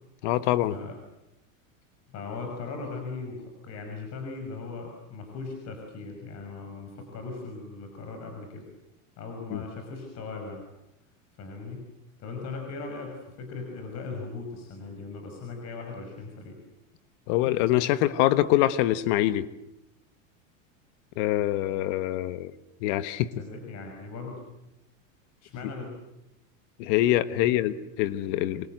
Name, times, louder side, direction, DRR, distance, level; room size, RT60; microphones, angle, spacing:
voice 1, 0.2-0.7 9.5-9.6 17.3-19.5 21.2-22.5 22.8-23.3 26.8-28.7, left 14 dB, 55° left, 13 dB, 1.4 m, -24 dB
voice 2, 2.1-8.7 9.2-10.6 11.4-11.9 12.2-16.6 23.4-24.4 25.4-25.9 27.3-27.4, left 4 dB, 40° left, 3 dB, 6.1 m, -38 dB
27.0 x 26.5 x 8.0 m, 0.88 s
supercardioid pair, 135°, 41 cm